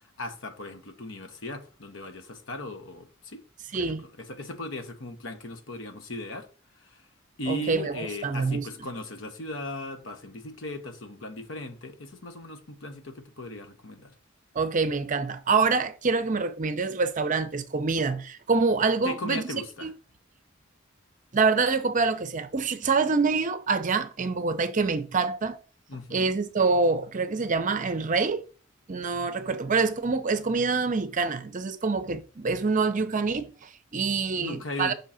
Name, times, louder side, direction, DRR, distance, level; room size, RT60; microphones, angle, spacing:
voice 1, 0.2-3.4 3.7-6.5 6.8-7.0 7.4-14.1 19.0-19.9 25.9-26.3 34.4-34.9, left 1 dB, 70° left, 1.0 m, -37 dB
voice 2, 3.7-4.0 7.5-8.7 14.5-19.9 21.3-25.6 26.1-28.5 28.9-34.9, right 4 dB, 40° right, 0.6 m, -26 dB
5.5 x 3.7 x 5.6 m
head